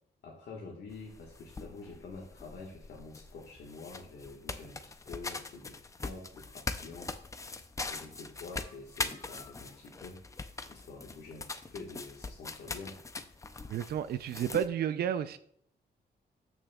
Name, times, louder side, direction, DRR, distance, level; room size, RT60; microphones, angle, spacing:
voice 1, 0.2-7.1 7.8-10.2 10.7-13.0, left 4 dB, 80° left, 1.4 m, -47 dB
sound 1, 0.9-14.7, left 3 dB, 20° left, 0.4 m, -42 dB
voice 2, 13.7-15.4, right 9 dB, 70° right, 0.4 m, -31 dB
13.0 x 6.2 x 2.3 m
wide cardioid pair, 155°, 17 cm